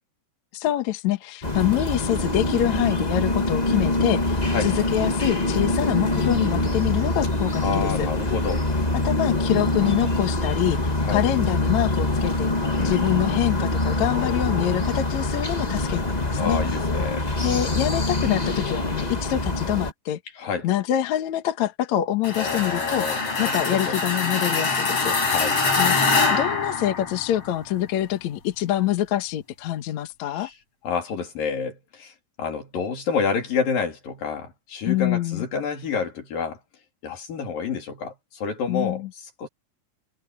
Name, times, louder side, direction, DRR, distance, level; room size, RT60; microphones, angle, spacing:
voice 1, 0.5-8.1 9.0-12.5 12.8-16.6 17.4-20.2 20.6-25.2 25.7-26.0 26.3-30.5 34.9-35.4 38.7-39.1, left 12 dB, 65° left, 2.4 m, -25 dB
sound 1, 1.4-19.9, left 2 dB, 20° left, 1.3 m, -24 dB
voice 2, 7.6-8.6 11.0-11.3 12.8-13.0 16.4-17.3 20.4-20.7 22.4-24.0 25.2-25.6 30.3-30.5 30.8-32.1 32.4-36.6 37.0-39.1 39.4-39.5, left 5 dB, 80° left, 5.1 m, -29 dB
sound 2, 22.2-27.5, left 4 dB, 45° left, 6.1 m, -24 dB
omnidirectional pair, 3.9 m